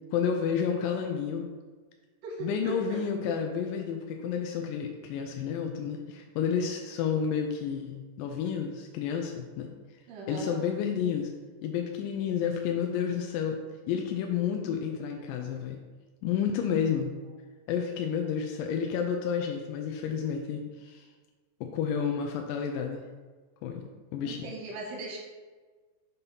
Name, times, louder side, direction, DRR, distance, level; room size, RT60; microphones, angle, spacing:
voice 1, 0.1-1.5 2.4-9.7 10.3-11.3 11.6-13.6 13.9-15.8 16.2-17.1 17.7-21.1 21.6-23.1 23.6-23.9 24.1-24.4, left 7 dB, 85° left, 3 dB, 2.1 m, -30 dB
voice 2, 2.2-3.0 10.1-10.6 24.2-25.2, right 2 dB, 85° right, -3 dB, 2.7 m, -38 dB
7.1 x 2.8 x 5.3 m, 1.4 s
omnidirectional pair, 3.8 m